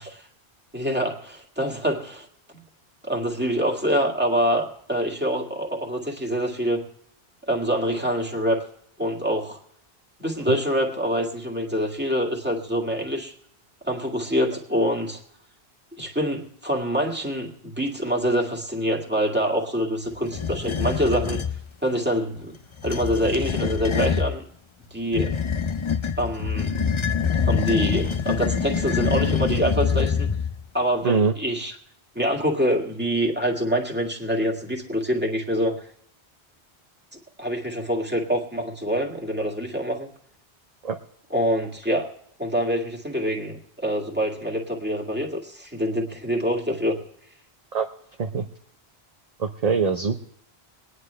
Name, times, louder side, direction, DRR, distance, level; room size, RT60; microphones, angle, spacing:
voice 1, 0.7-2.3 2.5-2.6 3.1-6.8 7.5-8.6 9.0-9.6 10.2-13.3 13.8-15.2 16.0-21.4 21.8-22.6 22.8-24.4 24.9-25.4 26.2-26.7 27.5-30.3 30.7-31.7 32.2-35.9 37.4-40.1 41.3-42.1 42.4-47.0, equal, 10° right, -1 dB, 1.9 m, -25 dB
sound 1, 20.3-21.6 22.7-24.3 25.1-30.6, left 6 dB, 35° left, 0.6 m, -25 dB
voice 2, 49.4-50.2, right 5 dB, 40° right, 4 dB, 0.8 m, -23 dB
23.5 x 9.6 x 3.3 m, 0.71 s
omnidirectional pair, 1.1 m